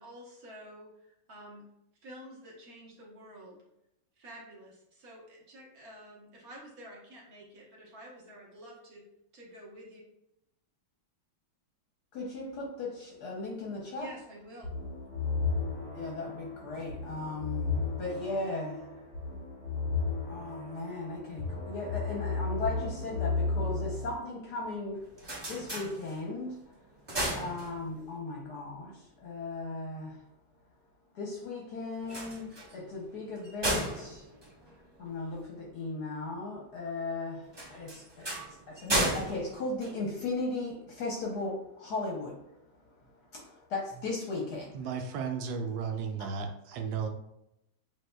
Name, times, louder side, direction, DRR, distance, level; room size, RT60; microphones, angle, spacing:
voice 1, 0.0-1.7 2.0-3.6 4.2-9.0 9.3-10.0 13.8-14.8, equal, 50° right, -3 dB, 1.3 m, -49 dB
voice 2, 12.1-14.1 15.9-18.9 20.3-25.1 25.5-26.7 27.4-30.2 31.1-34.3 34.7-42.7 43.1-44.9, left 2 dB, 65° left, -1 dB, 1.1 m, -37 dB
sound 1, 14.6-24.1, left 4 dB, 15° left, 1.1 m, -34 dB
sound 2, 24.9-26.5 26.8-28.2 31.9-35.4 37.5-40.6, right 1 dB, 35° right, 0.4 m, -35 dB
voice 3, 44.7-47.1, right 6 dB, 80° right, 5 dB, 1.3 m, -34 dB
7.4 x 2.7 x 2.2 m, 0.84 s
omnidirectional pair, 2.2 m